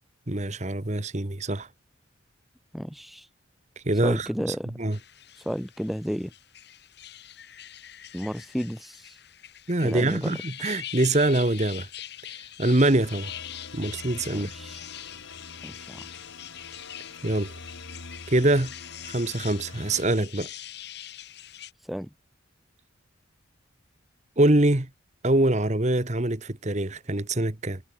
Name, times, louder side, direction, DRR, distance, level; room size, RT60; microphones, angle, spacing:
voice 1, 0.3-1.7 3.8-4.3 4.8-5.0 9.7-11.9 12.6-13.3 13.7-14.5 17.2-17.5 18.3-18.7 19.1-20.5 24.4-24.9 25.2-27.8, right 1 dB, 35° right, 1.4 m, -24 dB
voice 2, 2.7-3.3 4.0-4.7 5.4-6.3 8.1-9.2 9.8-10.4 14.3-14.8 15.6-16.0 21.9-22.1, equal, ahead, 2.1 m, -32 dB
sound 1, 4.9-21.7, left 12 dB, 55° left, 4.2 m, -43 dB
sound 2, 12.9-20.1, left 3 dB, 75° left, 2.8 m, -44 dB
head